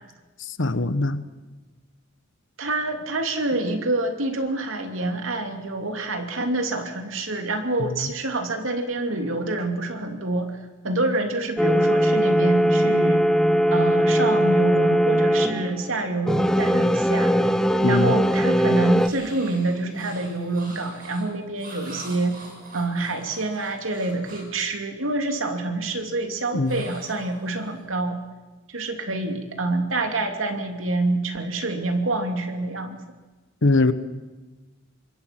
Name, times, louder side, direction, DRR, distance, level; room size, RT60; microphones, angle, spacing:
voice 1, 0.5-1.2 7.8-8.1 17.8-18.1 26.5-26.8 33.6-33.9, left 2 dB, 65° left, 12 dB, 1.2 m, -22 dB
voice 2, 2.6-10.6 10.8-13.2 13.7-17.6 17.9-22.4 22.7-28.2 28.7-33.0, right 2 dB, 75° right, 5 dB, 2.9 m, -27 dB
sound 1, 11.6-16.0 16.3-19.1, equal, 5° left, 1.0 m, -20 dB
sound 2, 19.0-24.6 26.6-27.8, right 2 dB, 45° right, 7.1 m, -44 dB
26.0 x 22.0 x 6.1 m, 1.2 s
head